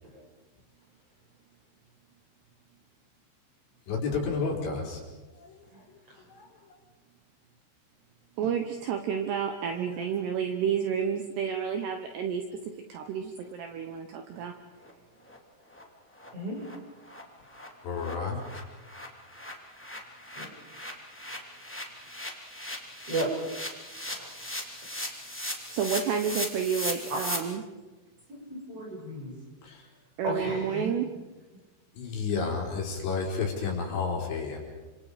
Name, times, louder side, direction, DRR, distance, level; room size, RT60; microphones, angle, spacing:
voice 1, 3.9-5.0 6.4-6.5 17.8-18.4 29.6-29.8 31.9-34.6, left 5 dB, 60° left, -1 dB, 6.4 m, -30 dB
voice 2, 8.4-12.4 12.9-14.6 25.7-27.6 30.2-31.1, right 7 dB, 70° right, 5 dB, 2.8 m, -30 dB
sound 1, 14.4-14.5 14.8-14.9 15.3-15.4 15.7-15.8 16.2-16.3 16.6-16.7 17.1-17.2 17.5-27.4, left 1 dB, 5° left, 1.4 m, -38 dB
voice 3, 28.3-29.3 30.2-30.9, right 1 dB, 30° right, -1 dB, 6.6 m, -34 dB
29.5 x 26.5 x 5.1 m, 1.2 s
omnidirectional pair, 5.8 m